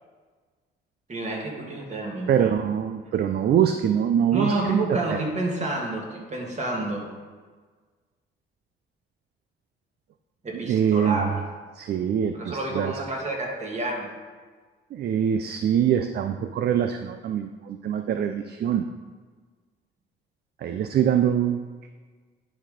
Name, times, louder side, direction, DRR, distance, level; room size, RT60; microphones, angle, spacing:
voice 1, 1.1-2.4 4.3-7.1 10.4-11.4 12.3-14.1, right 2 dB, 35° right, 0 dB, 1.9 m, -29 dB
voice 2, 2.3-4.8 5.1-5.2 10.7-11.2 11.8-12.9 14.9-18.9 20.6-21.6, right 9 dB, 55° right, 7 dB, 0.4 m, -24 dB
10.0 x 4.0 x 5.0 m, 1.5 s
cardioid pair, 90°, 20 cm